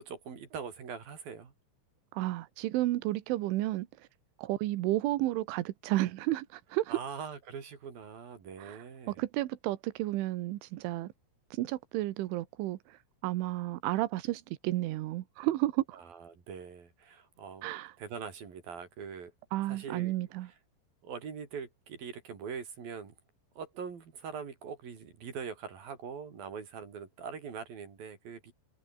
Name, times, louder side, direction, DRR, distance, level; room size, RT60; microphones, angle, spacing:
voice 1, 0.0-1.5 6.9-9.2 15.9-17.7 18.0-19.3 19.7-20.1 20.4-20.5 21.0-23.1 23.6-28.5, right 6 dB, 50° right, 5.0 m, -42 dB
voice 2, 2.1-3.9 4.4-7.0 8.6-11.1 11.5-13.0 13.2-16.0 17.6-17.9 19.5-20.5, right 16 dB, 90° right, 3.6 m, -32 dB
omnidirectional pair, 5.4 m